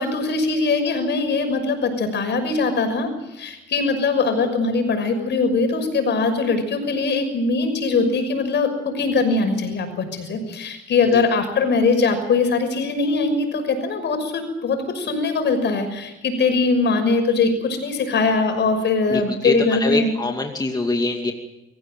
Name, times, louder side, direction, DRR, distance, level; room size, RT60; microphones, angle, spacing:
voice 1, 0.0-20.1, left 4 dB, 60° left, 6 dB, 6.2 m, -21 dB
voice 2, 19.1-21.3, left 2 dB, 20° left, 3 dB, 2.5 m, -24 dB
24.5 x 16.0 x 9.2 m, 0.93 s
cardioid pair, 90°, 20 cm